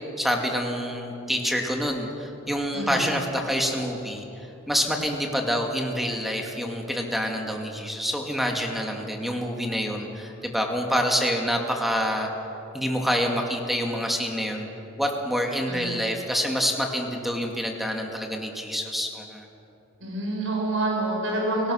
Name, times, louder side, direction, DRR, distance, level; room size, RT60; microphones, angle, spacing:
voice 1, 0.2-12.3 12.7-14.7 15.0-19.4, equal, ahead, 1 dB, 2.3 m, -27 dB
voice 2, 2.7-3.1 15.7-15.9 20.0-21.7, right 2 dB, 80° right, -2 dB, 5.8 m, -27 dB
30.0 x 18.0 x 6.5 m, 2.9 s
head